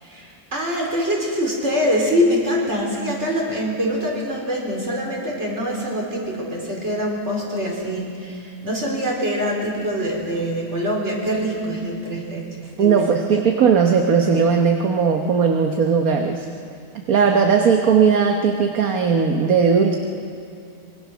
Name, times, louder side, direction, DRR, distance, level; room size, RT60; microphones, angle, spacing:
voice 1, 0.0-12.5 12.8-13.3, equal, 50° right, -2 dB, 4.7 m, -24 dB
voice 2, 12.8-16.5 16.9-20.0, right 6 dB, 75° right, 3 dB, 1.6 m, -18 dB
24.5 x 22.0 x 6.2 m, 2.5 s
omnidirectional pair, 1.5 m